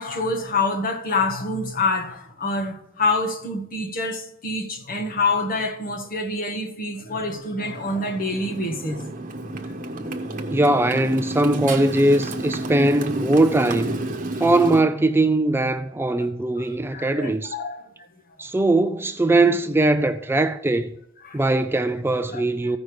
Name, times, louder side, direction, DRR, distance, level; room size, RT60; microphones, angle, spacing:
voice 1, 0.0-9.0 10.5-10.6 14.3-14.4 16.2-16.3 16.6-17.8 19.4-19.5 21.2-21.4 22.3-22.4, left 3 dB, 50° left, 1.4 m, -26 dB
Motorcycle, 7.6-14.8, right 2 dB, 45° right, 1.0 m, -30 dB
voice 2, 10.5-14.0 14.4-17.5 18.4-20.9 21.3-22.8, right 2 dB, 10° right, 0.4 m, -20 dB
15.0 x 5.3 x 4.8 m
head